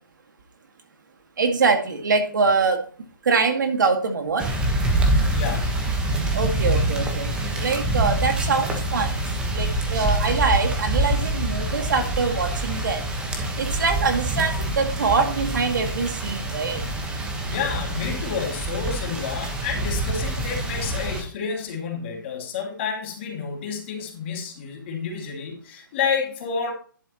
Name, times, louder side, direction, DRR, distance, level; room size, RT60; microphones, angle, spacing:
voice 1, 1.4-2.9 3.2-4.5 6.3-13.1 13.6-16.9, right 4 dB, 65° right, 5 dB, 2.0 m, -24 dB
sound 1, 4.4-21.2, right 1 dB, 10° right, 1.2 m, -25 dB
voice 2, 5.3-5.7 17.5-26.7, left 6 dB, 35° left, 1 dB, 2.3 m, -29 dB
10.5 x 7.4 x 3.0 m, 0.43 s
hypercardioid pair, 160°, 11 cm